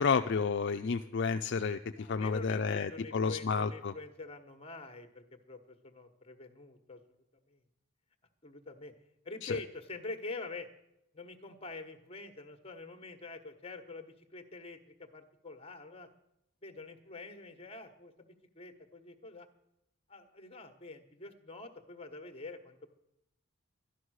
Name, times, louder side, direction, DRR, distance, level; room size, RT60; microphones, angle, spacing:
voice 1, 0.0-3.9 9.4-9.5, left 5 dB, 55° left, 7 dB, 0.4 m, -31 dB
voice 2, 2.0-7.0 7.5-7.6 8.4-8.9 9.2-10.7 11.1-16.1 16.6-19.5 20.1-23.0, left 3 dB, 25° left, 8 dB, 1.2 m, -46 dB
12.5 x 11.5 x 6.4 m, 0.82 s
head